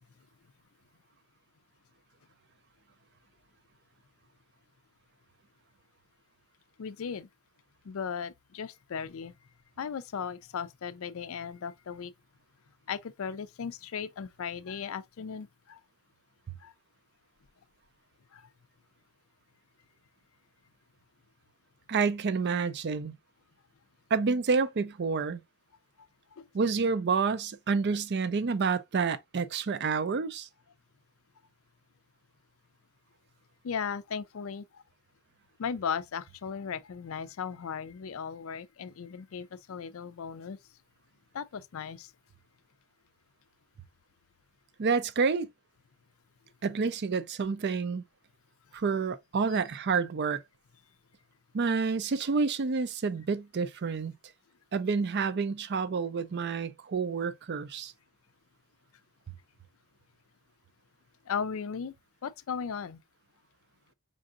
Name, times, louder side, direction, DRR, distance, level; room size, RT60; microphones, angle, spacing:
voice 1, 6.8-7.3 7.8-9.3 9.8-12.1 12.9-15.8 16.6-16.7 18.3-18.5 26.3-26.4 33.6-34.8 35.6-40.6 41.3-42.1 49.5-49.6 61.3-61.9 62.2-63.0, left 6 dB, 65° left, 0.4 m, -37 dB
voice 2, 21.9-23.1 24.1-25.4 26.5-30.5 44.8-45.5 46.6-48.0 48.7-50.4 51.5-54.1 54.7-57.9, right 5 dB, 50° right, 0.4 m, -29 dB
5.2 x 3.8 x 2.4 m
head